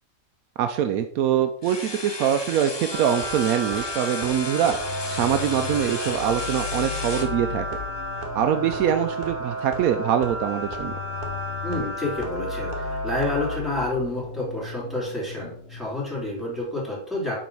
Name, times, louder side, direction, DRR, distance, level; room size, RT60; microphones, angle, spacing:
voice 1, 0.6-4.8 5.1-7.6 8.3-11.0, right 9 dB, 85° right, 8 dB, 1.0 m, -24 dB
sound 1, 1.6-7.3, left 3 dB, 35° left, 0.4 m, -34 dB
sound 2, 2.9-13.6, right 1 dB, 35° right, 1.2 m, -32 dB
sound 3, 4.6-16.6, left 8 dB, 60° left, 0.8 m, -37 dB
voice 2, 11.6-17.4, left 2 dB, ahead, -6 dB, 3.0 m, -29 dB
7.6 x 3.9 x 5.4 m, 0.63 s
omnidirectional pair, 1.5 m